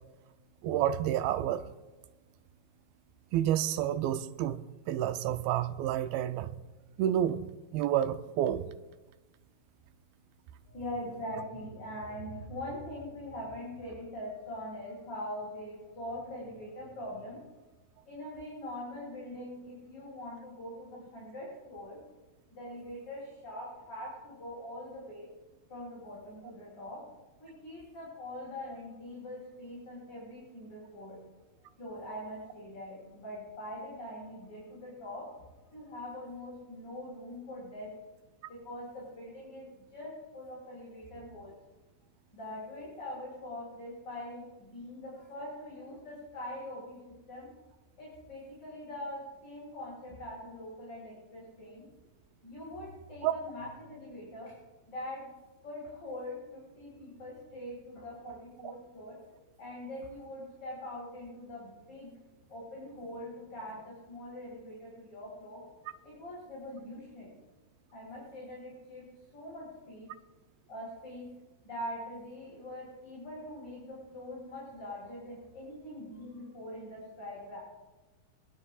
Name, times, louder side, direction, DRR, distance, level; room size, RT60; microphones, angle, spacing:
voice 1, 0.6-1.7 3.3-6.5 7.0-7.4 7.7-8.7 53.2-53.3 58.3-58.4, right 11 dB, 80° right, 2.2 m, -29 dB
voice 2, 10.6-17.4 18.1-22.0 22.5-25.3 25.7-27.1 27.4-31.2 31.8-35.3 35.7-37.9 38.5-41.5 42.3-47.5 48.0-51.8 52.4-54.6 54.9-55.2 55.6-59.2 59.6-62.2 62.5-65.6 66.0-67.4 67.9-70.1 70.7-71.3 71.6-77.6, left 1 dB, 25° left, 4.6 m, -43 dB
25.0 x 9.8 x 2.4 m
omnidirectional pair, 4.6 m